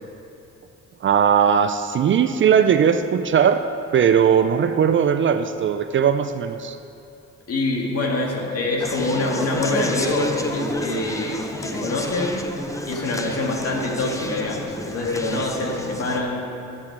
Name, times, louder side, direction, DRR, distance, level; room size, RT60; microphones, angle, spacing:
voice 1, 1.0-3.6 3.9-6.8, right 8 dB, 40° right, 10 dB, 0.4 m, -18 dB
voice 2, 7.5-12.4 12.9-16.4, left 2 dB, 55° left, -1 dB, 1.9 m, -25 dB
Conversation, 8.8-16.2, left 1 dB, 10° left, 0.7 m, -30 dB
14.5 x 6.2 x 4.6 m, 2.7 s
cardioid pair, 90°, 30 cm